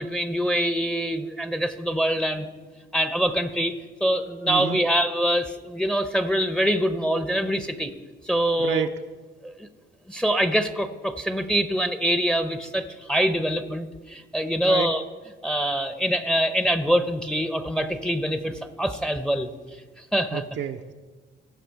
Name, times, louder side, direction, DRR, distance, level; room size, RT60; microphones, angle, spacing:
voice 1, 0.0-2.5 2.9-3.7 4.0-7.9 8.2-8.9 9.4-9.7 10.1-15.0 15.4-19.5 20.1-20.4, equal, 5° left, 9 dB, 0.7 m, -24 dB
voice 2, 4.5-4.8 8.6-8.9 14.6-14.9 20.3-20.9, right 8 dB, 65° right, 6 dB, 0.6 m, -29 dB
16.5 x 5.8 x 4.6 m, 1.4 s
cardioid pair, 90°, 20 cm